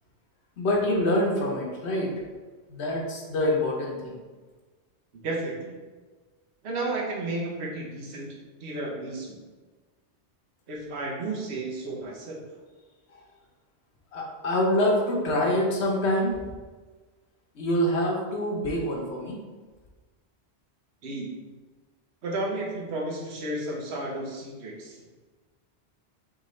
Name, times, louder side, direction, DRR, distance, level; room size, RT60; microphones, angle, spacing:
voice 1, 0.6-2.1 2.7-4.2 14.1-16.4 17.5-19.4, left 1 dB, 75° left, -1 dB, 1.2 m, -25 dB
voice 2, 5.1-5.8 6.6-9.4 10.7-12.4 21.0-21.3 22.2-25.0, right 2 dB, 75° right, -2 dB, 1.1 m, -33 dB
4.1 x 3.6 x 3.1 m, 1.3 s
omnidirectional pair, 1.1 m